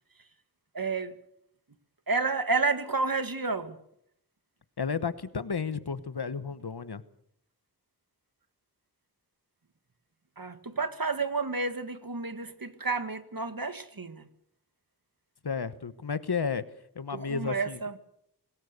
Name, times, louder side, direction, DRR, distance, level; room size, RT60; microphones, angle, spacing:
voice 1, 0.7-1.2 2.1-3.8 10.4-14.3 17.1-18.0, right 3 dB, 60° right, 9 dB, 2.1 m, -30 dB
voice 2, 4.8-7.0 15.4-16.6 16.9-17.8, left 5 dB, 70° left, 14 dB, 1.2 m, -32 dB
26.0 x 18.5 x 6.8 m, 0.72 s
wide cardioid pair, 60°, 40 cm